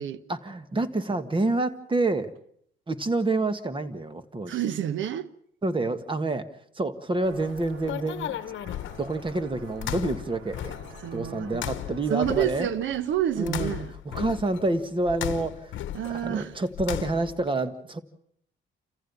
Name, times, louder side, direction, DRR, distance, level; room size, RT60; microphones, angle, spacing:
voice 1, 0.3-2.3 2.9-4.6 5.6-6.5 6.7-8.4 9.0-10.7 11.1-12.7 13.4-13.7 14.0-15.8 16.0-18.0, right 2 dB, 25° right, 1.7 m, -28 dB
voice 2, 4.5-5.3 11.0-11.6 12.1-13.9 15.9-16.5, right 11 dB, 75° right, 1.1 m, -28 dB
sound 1, 7.1-12.5, right 5 dB, 90° right, 2.5 m, -48 dB
sound 2, 7.3-17.5, left 12 dB, 75° left, 1.0 m, -37 dB
29.0 x 15.0 x 7.2 m
cardioid pair, 90°, 20 cm